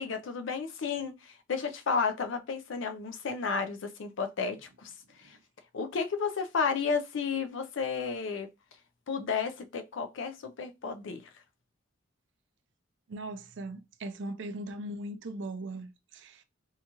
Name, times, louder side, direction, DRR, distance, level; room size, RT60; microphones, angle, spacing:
voice 1, 0.0-4.9 5.2-5.4 5.7-8.5 9.1-11.3, left 5 dB, 70° left, 0.4 m, -32 dB
voice 2, 13.1-16.4, right 1 dB, 60° right, 0.4 m, -39 dB
2.7 x 2.3 x 2.8 m
head